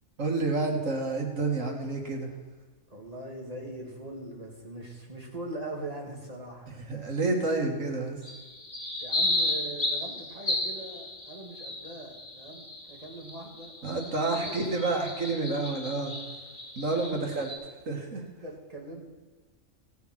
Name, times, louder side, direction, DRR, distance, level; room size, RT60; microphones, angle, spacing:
voice 1, 0.2-2.3 6.9-8.2 13.8-16.1 16.8-17.5 17.9-18.2, right 3 dB, 90° right, 2 dB, 2.3 m, -29 dB
voice 2, 2.9-6.7 9.0-13.7 14.1-15.0 16.9-17.4 18.4-19.0, right 1 dB, 30° right, -1 dB, 2.4 m, -41 dB
sound 1, 8.2-17.5, left 2 dB, 40° left, 2.7 m, -34 dB
17.0 x 7.1 x 6.1 m, 1.4 s
omnidirectional pair, 1.3 m